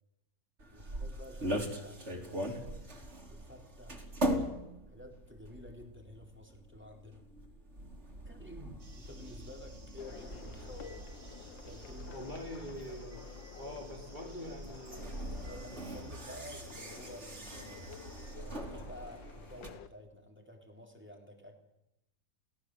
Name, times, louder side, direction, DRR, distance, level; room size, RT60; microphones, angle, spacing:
sound 1, 0.6-19.7, equal, 35° right, 3.7 m, -41 dB
voice 1, 0.7-2.9 3.3-4.0 4.9-7.2 8.2-11.0 11.7-12.4 13.6-14.7 15.5-18.0 18.4-21.6, left 1 dB, 5° right, 2 dB, 3.7 m, -51 dB
sound 2, 8.8-18.4, right 3 dB, 80° right, 3.7 m, -58 dB
sound 3, 10.0-19.9, left 8 dB, 90° left, 1.8 m, -52 dB
voice 2, 12.1-13.2 13.6-15.2, equal, 25° left, 0 dB, 2.8 m, -44 dB
30.0 x 18.0 x 7.7 m, 0.89 s
omnidirectional pair, 2.0 m